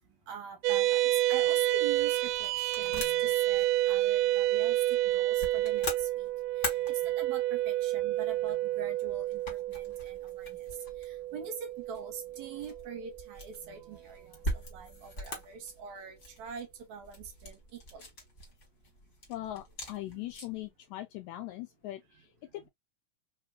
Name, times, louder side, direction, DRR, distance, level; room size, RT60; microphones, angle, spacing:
voice 1, 0.3-18.1 20.1-20.3, right 6 dB, 70° right, 2.1 m, -44 dB
sound 1, 0.6-13.3, right 15 dB, 85° right, 2.2 m, -29 dB
sound 2, 1.1-20.7, equal, 45° left, 0.9 m, -44 dB
voice 2, 19.3-22.7, left 15 dB, 80° left, 1.7 m, -41 dB
5.1 x 2.2 x 2.3 m
omnidirectional pair, 3.7 m